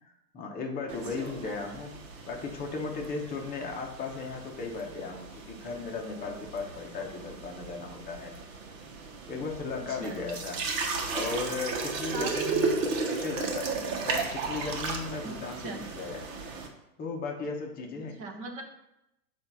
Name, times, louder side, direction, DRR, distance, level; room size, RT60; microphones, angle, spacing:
voice 1, 0.3-1.9 2.3-8.3 9.3-10.6 11.1-12.8 13.1-16.2 17.0-18.2, left 4 dB, 20° left, 1 dB, 0.9 m, -36 dB
sound 1, 0.9-16.7, right 4 dB, 50° right, 1.2 m, -35 dB
voice 2, 12.1-12.4 15.2-15.3 15.6-15.8 18.2-18.6, right 3 dB, 20° right, 4 dB, 0.4 m, -38 dB
6.9 x 2.7 x 5.4 m, 0.86 s
hypercardioid pair, 125°, 50 cm